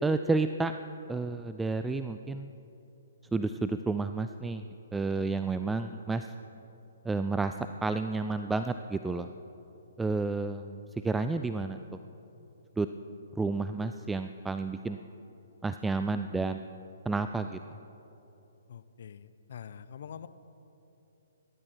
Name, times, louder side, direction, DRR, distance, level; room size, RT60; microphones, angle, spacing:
voice 1, 0.0-0.7 1.1-2.5 3.3-4.6 4.9-6.3 7.0-7.5 7.8-9.3 10.0-10.8 11.0-11.8 12.8-12.9 13.4-15.0 15.6-16.6 17.1-17.6, right 3 dB, 5° right, 9 dB, 0.3 m, -30 dB
voice 2, 18.7-20.3, left 8 dB, 60° left, 14 dB, 0.6 m, -45 dB
18.5 x 12.5 x 4.5 m, 3.0 s
hypercardioid pair, 135°, 0 cm